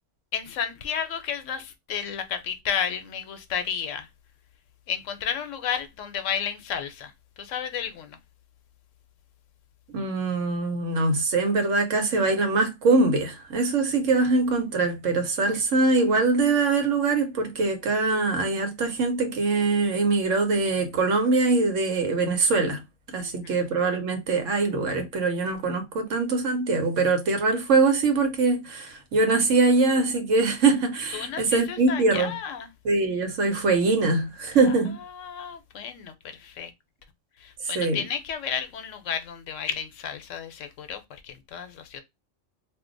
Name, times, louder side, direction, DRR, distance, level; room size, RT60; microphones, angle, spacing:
voice 1, 0.3-4.1 4.9-8.2 23.2-23.6 31.1-32.7 34.6-34.7 35.0-36.7 37.4-42.0, left 8 dB, 85° left, 1.0 m, -32 dB
voice 2, 9.9-22.8 23.1-32.3 32.8-35.0 37.6-38.0, right 3 dB, 80° right, 1.2 m, -23 dB
2.7 x 2.1 x 3.7 m
omnidirectional pair, 1.3 m